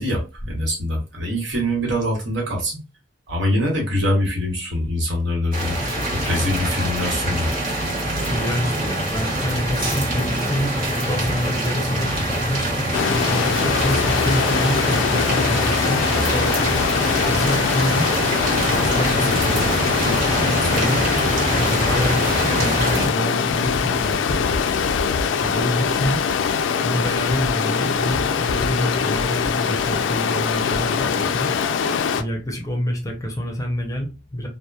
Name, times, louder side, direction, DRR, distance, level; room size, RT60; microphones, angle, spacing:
voice 1, 0.0-2.8 3.3-5.8 6.1-7.5, equal, 75° right, 1.1 m, -23 dB
sound 1, 5.5-23.1, right 1 dB, 50° right, 1.1 m, -24 dB
voice 2, 8.3-12.9 13.5-16.6 17.3-18.1 18.7-21.0 21.6-22.2 22.5-24.9 25.4-26.2 26.8-31.5 32.2-34.5, equal, 20° left, 0.6 m, -27 dB
Stream, 12.9-32.2, left 6 dB, 80° left, 0.3 m, -22 dB
2.8 x 2.0 x 2.3 m
head